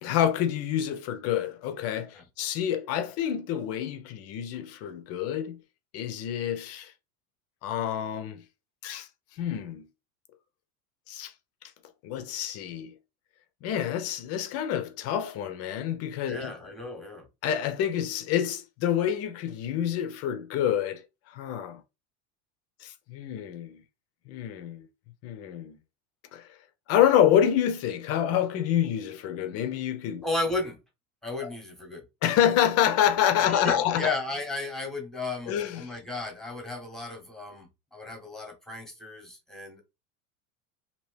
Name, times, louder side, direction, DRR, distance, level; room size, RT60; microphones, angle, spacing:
voice 1, 0.0-5.6 5.9-6.9 7.6-8.4 8.8-9.1 9.4-9.9 11.1-11.3 12.0-12.9 13.6-16.5 17.4-21.0 21.3-21.8 22.8-23.8 24.3-24.8 25.2-25.8 26.3-26.5 26.9-30.2 31.4-31.5 32.2-34.1 35.5-35.9, left 10 dB, 35° left, 0.4 m, -27 dB
voice 2, 16.3-17.3 30.2-30.8 31.2-32.0 33.4-39.8, left 2 dB, ahead, 0.9 m, -34 dB
2.7 x 2.7 x 3.2 m
supercardioid pair, 125°, 43 cm